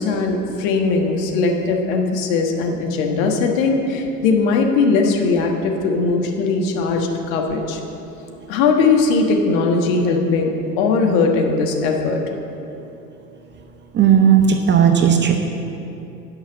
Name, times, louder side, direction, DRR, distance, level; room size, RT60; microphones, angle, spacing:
voice 1, 0.0-7.8 8.5-12.2, left 4 dB, 55° left, 2 dB, 1.5 m, -19 dB
voice 2, 13.9-15.5, right 8 dB, 25° right, 4 dB, 0.7 m, -14 dB
9.0 x 5.5 x 7.3 m, 2.8 s
hypercardioid pair, 85°, 48 cm